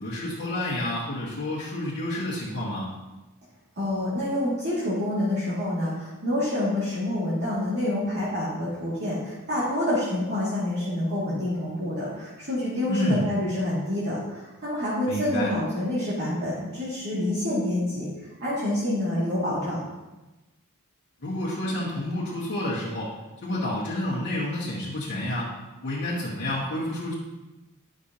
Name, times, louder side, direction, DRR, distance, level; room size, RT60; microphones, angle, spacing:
voice 1, 0.0-2.9 12.9-13.3 15.1-15.5 21.2-23.1 23.4-25.5 25.8-27.1, left 1 dB, 55° left, -10 dB, 1.9 m, -29 dB
voice 2, 3.8-19.8, left 1 dB, 50° right, -10 dB, 2.4 m, -27 dB
11.0 x 6.6 x 2.9 m, 1.1 s
head